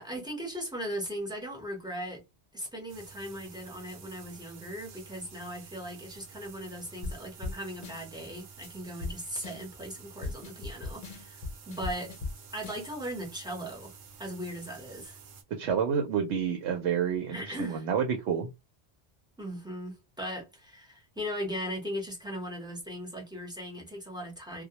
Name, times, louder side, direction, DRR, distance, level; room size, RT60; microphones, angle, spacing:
voice 1, 0.0-2.2 2.5-12.1 12.5-13.9 14.2-15.2 17.3-17.9 19.4-24.6, equal, 5° right, 0.7 m, -38 dB
sound 1, 2.9-15.4, right 5 dB, 60° right, 0.6 m, -50 dB
sound 2, 7.0-7.2 7.4-7.6 7.8-8.3 8.6-8.7 9.0-9.1 9.4-9.9 10.2-12.3 12.6-13.1, left 3 dB, 55° left, 0.6 m, -38 dB
voice 2, 15.5-18.5, right 7 dB, 90° right, 0.9 m, -29 dB
2.2 x 2.1 x 2.8 m
omnidirectional pair, 1.1 m